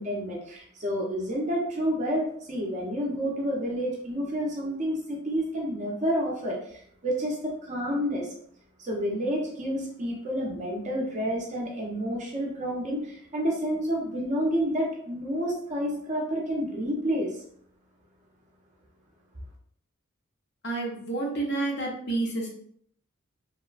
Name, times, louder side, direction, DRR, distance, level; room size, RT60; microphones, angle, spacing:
voice 1, 0.0-8.3 8.8-17.3, equal, 35° right, -1 dB, 0.5 m, -29 dB
voice 2, 20.6-22.5, right 2 dB, 50° left, -1 dB, 0.6 m, -29 dB
2.9 x 2.1 x 2.4 m, 0.65 s
head